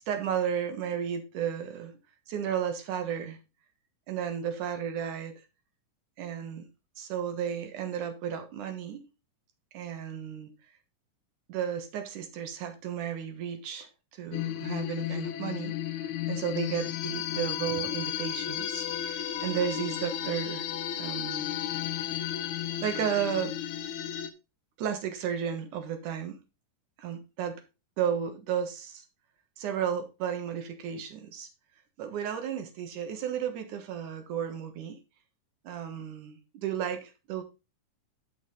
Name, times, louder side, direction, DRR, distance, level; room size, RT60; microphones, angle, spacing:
voice 1, 0.1-1.9 2.3-3.4 4.1-5.3 6.2-6.7 7.0-9.1 9.7-10.5 11.5-20.7 20.9-21.5 22.8-23.5 24.8-26.4 27.0-27.6 28.0-29.0 29.6-31.5 32.0-35.0 35.6-37.4, right 8 dB, 70° right, 2.7 m, -33 dB
sound 1, 14.3-24.3, left 11 dB, 75° left, 2.0 m, -33 dB
9.3 x 6.4 x 3.9 m
omnidirectional pair, 4.0 m